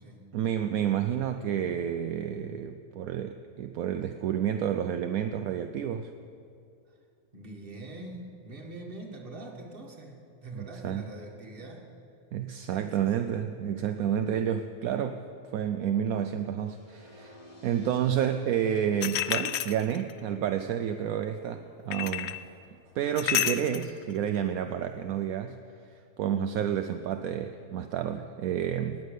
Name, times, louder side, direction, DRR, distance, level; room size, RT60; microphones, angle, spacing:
voice 1, 0.3-6.1 10.6-11.1 12.3-15.2 15.5-17.4 17.6-22.3 22.9-25.6 26.2-29.1, right 9 dB, 75° right, 7 dB, 1.0 m, -30 dB
voice 2, 7.3-11.9 12.7-13.3, right 2 dB, 40° right, 0 dB, 1.8 m, -44 dB
sound 1, 16.6-22.6, left 1 dB, 25° left, 1.4 m, -55 dB
sound 2, 19.0-20.2 21.9-22.4 23.2-23.9, left 10 dB, 70° left, 0.6 m, -29 dB
18.5 x 7.4 x 6.6 m, 2.5 s
omnidirectional pair, 1.6 m